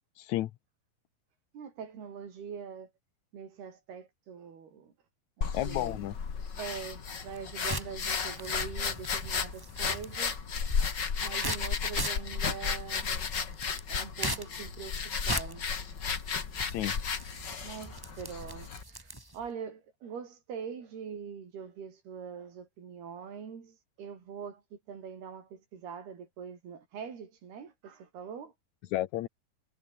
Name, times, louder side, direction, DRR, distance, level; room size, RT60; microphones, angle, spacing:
voice 1, 0.2-0.5 5.5-6.1 16.6-16.9 28.9-29.3, left 14 dB, 70° left, 1.8 m, -32 dB
voice 2, 1.5-2.9 3.3-4.9 5.4-6.0 6.6-10.4 11.2-13.3 13.9-15.0 15.3-16.0 17.6-28.5, right 7 dB, 85° right, 6.2 m, -43 dB
sound 1, 5.4-18.8, left 6 dB, 35° left, 2.1 m, -34 dB
sound 2, 7.2-19.5, right 1 dB, 10° right, 1.3 m, -41 dB
omnidirectional pair, 4.4 m